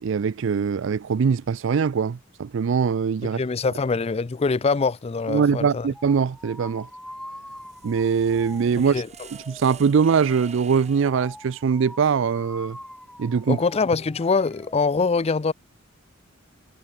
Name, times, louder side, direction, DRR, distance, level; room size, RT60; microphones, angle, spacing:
voice 1, 0.0-3.4 5.3-6.9 7.8-9.0 9.5-12.8 13.2-13.6, right 6 dB, 65° right, 0.4 m, -22 dB
voice 2, 3.4-5.9 8.9-9.1 13.5-15.5, left 4 dB, 30° left, 0.4 m, -23 dB
sound 1, 5.9-14.8, left 1 dB, 5° left, 4.7 m, -44 dB
sound 2, 7.4-11.3, right 6 dB, 35° right, 2.1 m, -46 dB
head